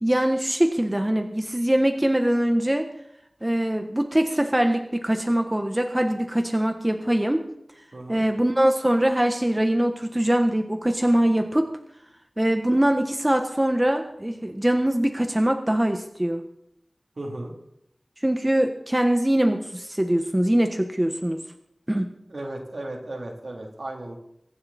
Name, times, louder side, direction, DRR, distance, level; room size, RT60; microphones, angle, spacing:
voice 1, 0.0-2.9 3.4-7.4 8.1-11.7 12.4-16.4 18.2-21.4 21.9-22.1, right 1 dB, 20° right, 6 dB, 1.4 m, -22 dB
voice 2, 7.9-8.2 17.2-17.5 22.3-24.2, right 1 dB, 75° right, 0 dB, 3.4 m, -35 dB
23.5 x 9.9 x 4.3 m, 0.74 s
wide cardioid pair, 50°, 0 cm